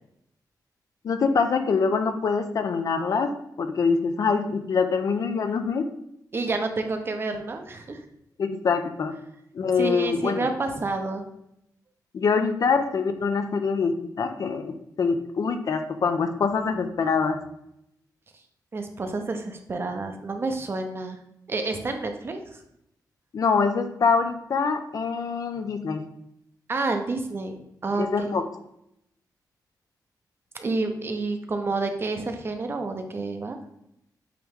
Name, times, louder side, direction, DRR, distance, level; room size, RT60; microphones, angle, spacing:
voice 1, 1.0-3.3 3.6-5.9 8.4-9.1 9.5-10.5 12.1-17.4 23.3-26.0 28.0-28.4, left 5 dB, 55° left, 7 dB, 0.6 m, -24 dB
voice 2, 6.3-8.0 9.8-11.2 18.7-21.2 21.5-22.6 26.7-28.3 30.5-33.6, right 3 dB, 35° right, 5 dB, 0.7 m, -29 dB
8.5 x 3.1 x 3.6 m, 0.79 s
wide cardioid pair, 155°, 7 cm